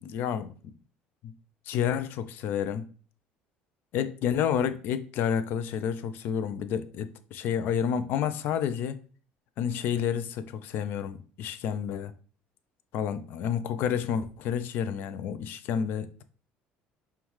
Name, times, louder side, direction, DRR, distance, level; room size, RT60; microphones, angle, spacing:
voice 1, 0.0-0.7 1.2-1.3 1.7-2.8 3.9-9.0 9.6-12.1 12.9-16.2, left 8 dB, 65° left, 0.4 m, -30 dB
5.4 x 2.3 x 3.0 m
cardioid pair, 120°, 4 cm